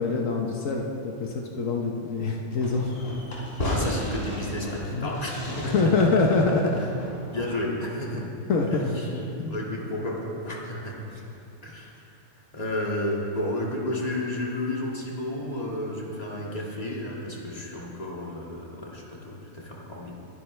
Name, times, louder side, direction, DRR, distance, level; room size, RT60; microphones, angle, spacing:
voice 1, 0.0-2.9 4.9-5.1 5.7-6.6 8.2-9.6, left 3 dB, 75° left, 0 dB, 1.3 m, -25 dB
Fireworks, 2.6-7.8, equal, 45° left, 3.4 m, -34 dB
voice 2, 3.6-5.9 6.8-6.9 7.3-8.3 8.7-9.1 9.5-11.2 11.6-12.0 12.3-20.1, left 1 dB, 30° left, -3 dB, 2.0 m, -32 dB
22.5 x 10.5 x 3.2 m, 2.8 s
omnidirectional pair, 1.4 m